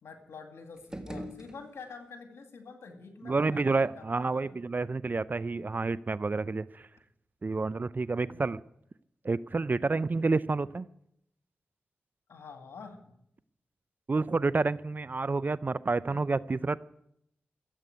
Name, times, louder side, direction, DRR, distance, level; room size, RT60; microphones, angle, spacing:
voice 1, 0.0-4.5 8.1-8.5 12.3-13.1 16.1-16.2, left 4 dB, 85° left, 4 dB, 2.2 m, -47 dB
sound 1, 0.7-2.2, equal, 15° right, 1.7 m, -43 dB
voice 2, 3.2-6.9 7.4-8.6 9.2-10.9 14.1-16.8, right 3 dB, 45° right, 17 dB, 0.4 m, -29 dB
13.5 x 8.2 x 9.4 m, 0.77 s
cardioid pair, 40°, 4 cm